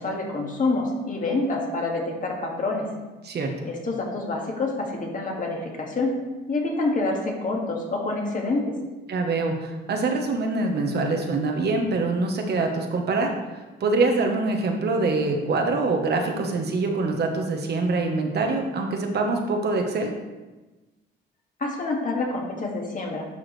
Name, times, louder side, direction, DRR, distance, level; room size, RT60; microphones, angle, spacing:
voice 1, 0.0-2.9 3.6-6.1 6.5-8.7 21.6-23.3, left 2 dB, 40° left, -1 dB, 1.9 m, -27 dB
voice 2, 3.2-3.7 9.1-13.3 13.8-20.1, right 3 dB, 55° right, 3 dB, 1.2 m, -24 dB
10.5 x 4.8 x 3.3 m, 1.2 s
cardioid pair, 90°, 20 cm